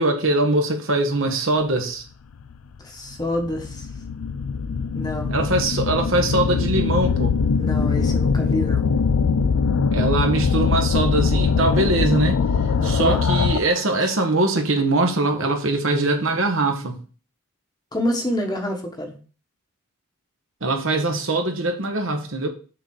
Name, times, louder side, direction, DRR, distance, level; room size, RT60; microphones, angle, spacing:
voice 1, 0.0-2.0 5.3-7.4 9.9-12.4 12.8-17.0 20.6-22.5, right 2 dB, 60° right, 1.4 m, -22 dB
sound 1, 2.4-2.5 3.2-13.8, left 5 dB, 85° left, 0.5 m, -22 dB
voice 2, 2.8-3.9 4.9-5.6 7.6-8.9 12.8-13.2 14.0-14.1 17.9-19.2, left 1 dB, 20° left, 1.3 m, -27 dB
6.5 x 4.1 x 6.2 m
head